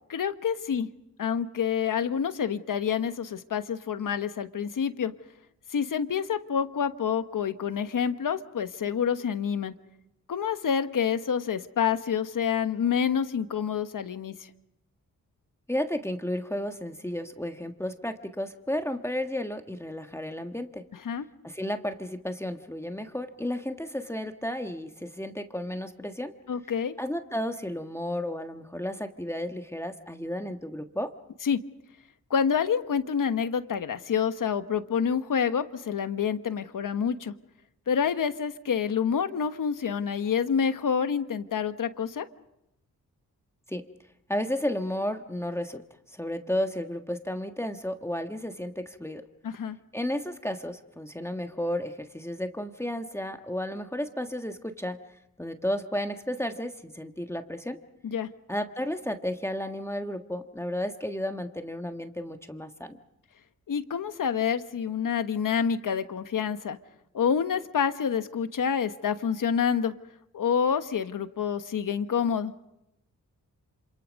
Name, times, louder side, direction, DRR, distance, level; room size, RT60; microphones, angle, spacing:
voice 1, 0.1-0.9 1.2-5.1 5.7-9.7 10.3-14.5 21.0-21.3 26.5-26.9 31.4-31.6 32.3-37.3 37.9-42.3 49.4-49.8 58.0-58.3 63.7-66.8 67.1-69.9 70.3-72.5, left 7 dB, 70° left, 10 dB, 1.3 m, -27 dB
voice 2, 15.7-20.8 21.4-26.3 27.0-31.1 43.7-43.8 44.3-45.8 46.1-49.2 49.9-55.0 55.4-57.8 58.5-63.0, left 1 dB, 10° left, 6 dB, 1.5 m, -33 dB
27.0 x 27.0 x 5.3 m, 0.85 s
cardioid pair, 75°, 33 cm